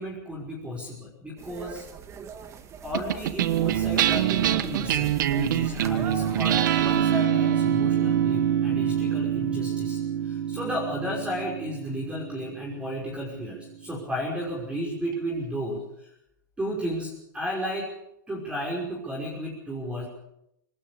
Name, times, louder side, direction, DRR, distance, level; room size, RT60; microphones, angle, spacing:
voice 1, 0.0-1.9 2.8-16.1 16.6-17.9 18.3-20.1, equal, 10° right, -2 dB, 5.7 m, -33 dB
sound 1, 1.4-7.1, right 6 dB, 30° right, 2.0 m, -40 dB
sound 2, 2.9-13.5, right 10 dB, 75° right, 1.3 m, -25 dB
25.0 x 20.0 x 5.3 m, 0.78 s
hypercardioid pair, 125°, 10 cm